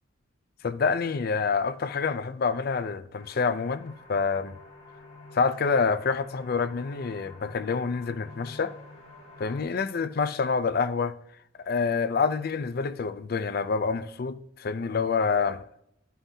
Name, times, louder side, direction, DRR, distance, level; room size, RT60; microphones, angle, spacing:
voice 1, 0.6-4.6 5.3-8.7 9.4-11.2 11.6-15.6, left 5 dB, 50° left, 0.4 m, -27 dB
sound 1, 3.1-9.6, left 2 dB, 30° left, 2.5 m, -49 dB
13.0 x 5.7 x 2.7 m
head